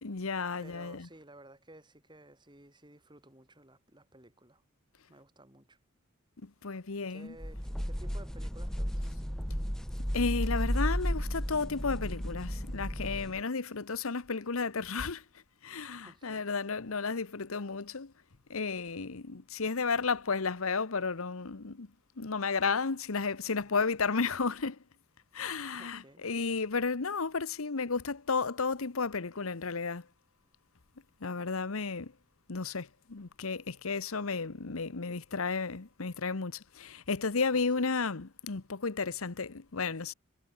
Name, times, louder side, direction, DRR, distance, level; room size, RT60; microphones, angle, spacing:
voice 1, 0.0-1.1 6.4-7.3 10.1-15.2 15.6-18.1 18.5-21.9 22.2-24.8 25.3-30.0 31.2-32.1 32.5-40.1, left 4 dB, 80° left, 1.0 m, -33 dB
voice 2, 0.6-4.6 5.1-5.8 7.1-9.3 16.0-16.5 25.8-26.2 37.5-37.9, right 1 dB, 20° right, 5.0 m, -55 dB
sound 1, 7.4-13.4, equal, 5° left, 1.0 m, -33 dB
head